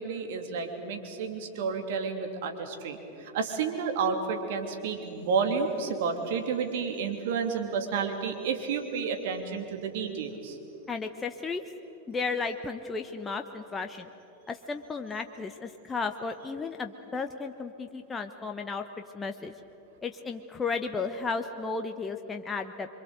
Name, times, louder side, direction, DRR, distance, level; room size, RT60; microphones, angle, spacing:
voice 1, 0.0-10.6, right 5 dB, 50° right, 4 dB, 3.1 m, -31 dB
voice 2, 10.9-11.6 12.1-14.1 14.5-18.9 19.1-19.5 20.0-22.9, left 4 dB, 15° left, 5 dB, 1.1 m, -34 dB
26.5 x 24.0 x 8.1 m, 3.0 s
figure-of-eight pair, 90°, 0 cm